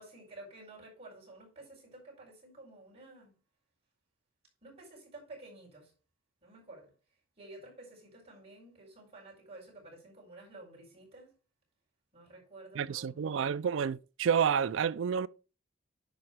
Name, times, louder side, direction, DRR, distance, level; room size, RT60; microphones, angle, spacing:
voice 1, 0.0-3.4 4.6-5.9 6.4-6.9 7.4-11.4 12.1-13.3, right 2 dB, 30° right, 4.7 m, -52 dB
voice 2, 12.7-15.3, right 7 dB, 65° right, 0.4 m, -29 dB
10.5 x 4.3 x 4.5 m
head